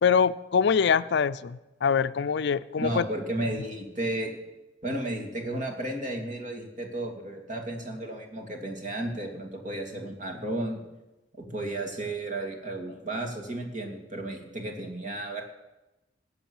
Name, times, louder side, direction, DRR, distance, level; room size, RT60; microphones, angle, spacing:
voice 1, 0.0-3.0, left 6 dB, 65° left, 14 dB, 0.4 m, -24 dB
voice 2, 2.8-4.3 4.8-10.8 11.4-15.4, right 1 dB, 45° right, 3 dB, 2.5 m, -33 dB
19.0 x 8.2 x 7.1 m, 1.0 s
head